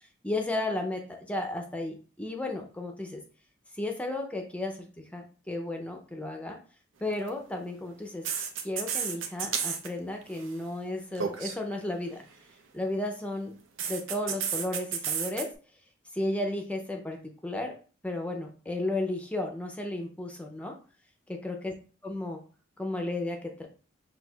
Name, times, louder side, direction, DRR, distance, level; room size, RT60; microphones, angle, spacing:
voice 1, 0.2-1.0 1.3-3.2 3.7-6.6 7.0-8.2 8.6-12.2 12.7-13.5 13.9-15.5 16.1-17.2 17.4-17.7 18.0-20.7 21.4-21.7 22.0-22.4 22.8-23.7, left 2 dB, 5° left, 3 dB, 0.5 m, -33 dB
sound 1, 7.1-7.3 8.2-9.9 10.2-10.5 11.1-11.6 13.8-15.4, right 7 dB, 85° right, 0.6 m, -32 dB
5.9 x 2.6 x 2.3 m, 0.38 s
head